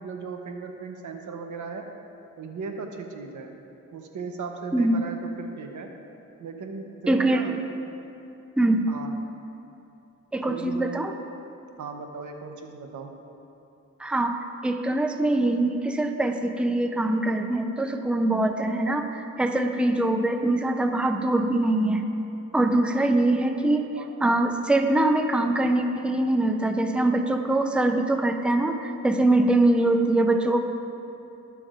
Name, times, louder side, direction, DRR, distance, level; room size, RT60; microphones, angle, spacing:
voice 1, 0.0-1.9 2.4-3.5 3.9-5.9 6.4-7.6 8.9-9.2 10.5-11.0 11.8-13.1 23.8-24.1 26.0-26.1, right 4 dB, 85° right, 4 dB, 0.9 m, -37 dB
voice 2, 4.7-5.1 7.1-7.4 8.6-8.9 10.3-11.1 14.0-22.1 22.5-23.9 24.2-30.6, right 2 dB, 5° right, 5 dB, 0.5 m, -23 dB
21.0 x 7.1 x 2.5 m, 2.8 s
wide cardioid pair, 105°, 30 cm